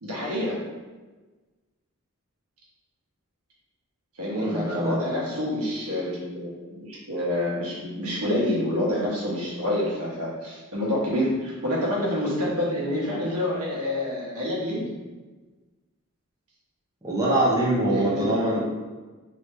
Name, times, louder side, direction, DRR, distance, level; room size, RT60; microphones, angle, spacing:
voice 1, 0.0-0.6 4.2-14.9 17.9-18.6, left 1 dB, 85° right, -4 dB, 1.0 m, -27 dB
voice 2, 4.3-5.4 17.0-18.6, right 1 dB, 15° right, -6 dB, 0.6 m, -24 dB
3.3 x 2.7 x 3.1 m, 1.3 s
head